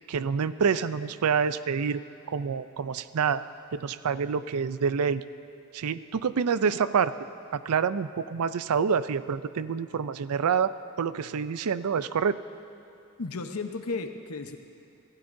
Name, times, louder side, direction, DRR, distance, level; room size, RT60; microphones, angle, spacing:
voice 1, 0.1-2.0 2.3-3.4 3.7-5.2 5.7-7.1 7.5-10.7 11.0-12.4, right 6 dB, 90° right, 14 dB, 0.4 m, -27 dB
voice 2, 13.2-14.6, left 3 dB, 85° left, 6 dB, 0.9 m, -34 dB
25.0 x 15.5 x 2.6 m, 2.8 s
head